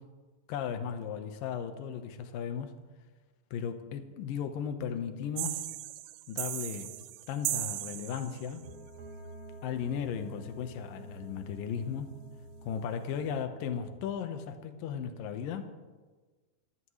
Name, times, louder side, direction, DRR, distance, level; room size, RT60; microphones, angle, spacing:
voice 1, 0.5-2.7 3.5-5.7 6.3-6.9 7.3-8.7 9.6-12.2 12.6-15.7, left 7 dB, 70° left, 7 dB, 2.3 m, -36 dB
sound 1, 5.4-8.6, right 16 dB, 85° right, 2.9 m, -37 dB
sound 2, 7.6-14.0, right 2 dB, 45° right, 3.3 m, -49 dB
27.5 x 15.5 x 3.3 m, 1.3 s
omnidirectional pair, 5.3 m